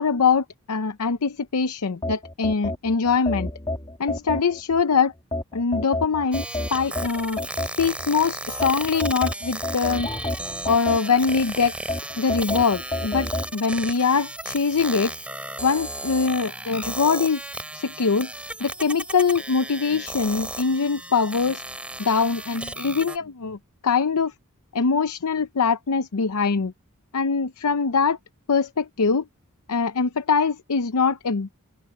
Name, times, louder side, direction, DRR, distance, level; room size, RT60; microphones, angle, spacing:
voice 1, 0.0-3.5 4.0-5.1 5.5-6.4 6.7-7.4 7.8-10.1 10.7-11.7 12.2-15.1 15.6-17.4 17.7-18.3 18.6-21.6 22.0-23.6 23.8-24.3 24.7-26.7 27.1-28.2 28.5-29.2 29.7-31.5, left 5 dB, 90° left, 0.7 m, -23 dB
sound 1, 2.0-4.8 5.3-8.1 8.6-11.4 11.9-13.5, left 1 dB, 25° left, 1.9 m, -30 dB
sound 2, 6.3-23.2, right 1 dB, 5° right, 4.0 m, -35 dB
open air
head